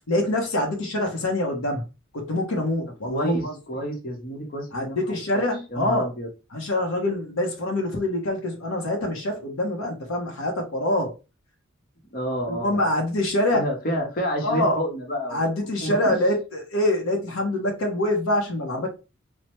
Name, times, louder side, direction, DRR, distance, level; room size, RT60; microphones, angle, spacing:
voice 1, 0.1-1.8 2.1-3.5 4.7-6.1 6.5-11.1 12.5-13.7 14.4-14.8 15.3-18.9, left 1 dB, 85° left, 0.7 m, -25 dB
voice 2, 3.0-5.0 5.7-6.3 12.1-12.9 13.5-15.4 15.8-16.2, equal, 45° left, 0.8 m, -29 dB
3.1 x 2.0 x 2.9 m
head